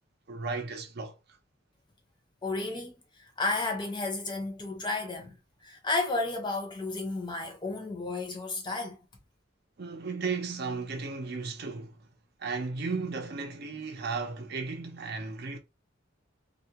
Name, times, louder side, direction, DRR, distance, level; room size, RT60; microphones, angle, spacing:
voice 1, 0.3-1.1 9.8-12.0 12.4-15.6, right 4 dB, 55° right, 0.6 m, -35 dB
voice 2, 2.4-9.1, left 2 dB, 25° left, 0.6 m, -33 dB
2.3 x 2.1 x 2.8 m
head